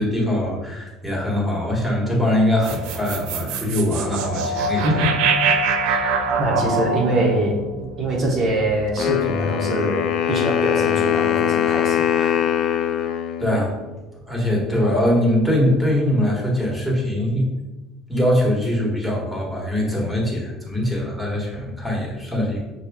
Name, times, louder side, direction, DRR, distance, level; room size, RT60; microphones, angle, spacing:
voice 1, 0.0-5.1 13.4-13.7 14.3-17.7 18.1-22.6, left 1 dB, 5° right, -2 dB, 1.2 m, -22 dB
sound 1, 2.6-8.9, right 4 dB, 80° right, 0.4 m, -24 dB
voice 2, 4.8-5.2 5.8-7.6 8.0-12.9, right 1 dB, 45° right, -2 dB, 0.9 m, -24 dB
Wind instrument woodwind instrument, 9.0-14.0, left 9 dB, 55° left, 0.4 m, -22 dB
5.7 x 2.2 x 3.5 m, 1.1 s
cardioid pair, 125°, 0 cm